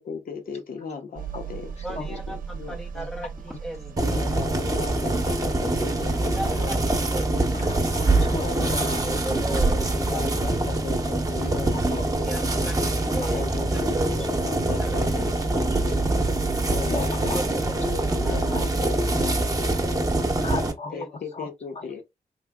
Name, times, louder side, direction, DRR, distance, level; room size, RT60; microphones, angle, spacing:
voice 1, 0.0-3.1 4.0-7.4 8.4-12.4 13.3-16.0 16.7-20.1 20.9-22.0, left 6 dB, 65° left, 1.0 m, -37 dB
sound 1, 1.2-10.5, right 6 dB, 60° right, 0.7 m, -39 dB
voice 2, 1.8-2.4 2.7-4.2 6.3-6.8 7.1-7.3 9.0-9.8 10.1-10.2 12.0-13.5 13.7-14.3 14.8-14.9 17.3-17.5 18.1-18.4 20.4-20.5 20.9-21.1, right 1 dB, ahead, 0.6 m, -36 dB
sound 2, 4.0-20.7, right 2 dB, 20° right, 0.9 m, -24 dB
voice 3, 7.5-9.1 9.5-9.6 11.4-12.7 13.1-13.3 16.9-17.4 17.8-18.0 18.2-18.6 20.4-20.9 21.3-21.5 21.7-21.8, left 3 dB, 45° left, 0.9 m, -35 dB
3.4 x 3.3 x 2.2 m
cardioid pair, 90°, 16 cm